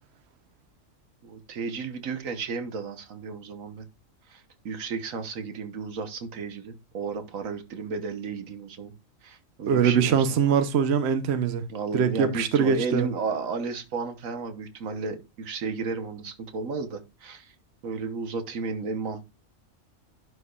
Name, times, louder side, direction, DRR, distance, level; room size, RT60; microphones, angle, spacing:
voice 1, 1.2-3.9 4.3-8.9 9.2-10.3 11.7-17.5 17.8-19.2, right 4 dB, 85° right, 1.5 m, -33 dB
voice 2, 9.7-11.6 11.9-13.1, right 7 dB, 60° right, 1.0 m, -22 dB
11.0 x 4.6 x 2.3 m
omnidirectional pair, 1.3 m